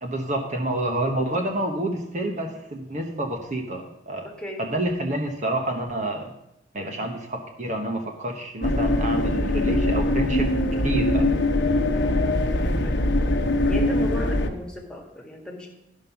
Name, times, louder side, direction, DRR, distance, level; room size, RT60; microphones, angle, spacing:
voice 1, 0.0-4.3 4.6-6.3 6.7-10.5 10.8-11.2, right 1 dB, 45° right, 3 dB, 1.0 m, -28 dB
voice 2, 4.2-4.7 6.8-7.1 11.9-13.0 13.7-15.7, equal, 5° left, 0 dB, 1.7 m, -36 dB
sound 1, 8.6-14.5, left 1 dB, 90° left, 1.0 m, -22 dB
13.0 x 5.5 x 5.8 m, 0.84 s
head